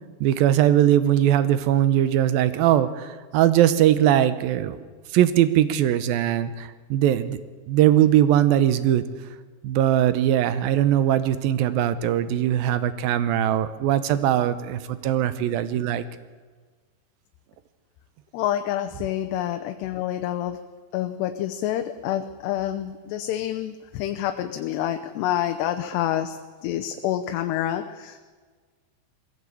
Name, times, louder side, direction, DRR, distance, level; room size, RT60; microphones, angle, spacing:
voice 1, 0.2-4.8 5.1-7.4 7.7-9.0 9.6-16.0, right 11 dB, 75° right, 13 dB, 2.4 m, -20 dB
voice 2, 18.3-20.6 20.9-26.4 26.6-28.2, left 12 dB, 85° left, 6 dB, 2.9 m, -27 dB
21.5 x 16.5 x 8.5 m, 1.5 s
omnidirectional pair, 4.8 m